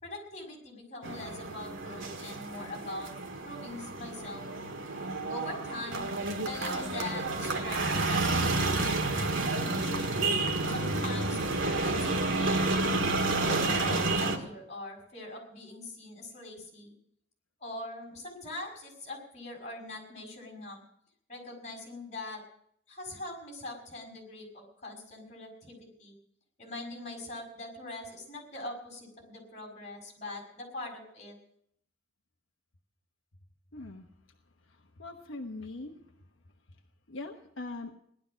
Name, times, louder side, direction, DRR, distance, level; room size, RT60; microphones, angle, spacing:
voice 1, 0.0-3.1 3.4-4.4 5.3-6.1 6.4-10.2 10.7-12.7 13.3-16.9 17.6-20.8 21.3-22.4 22.9-26.1 26.6-31.4, left 2 dB, 35° left, 0 dB, 6.0 m, -42 dB
sound 1, 1.0-14.4, right 2 dB, 80° right, 1.9 m, -30 dB
voice 2, 33.7-34.0 35.0-36.0 37.1-37.9, left 2 dB, 75° left, 2 dB, 1.2 m, -41 dB
18.0 x 12.0 x 6.4 m, 0.71 s
head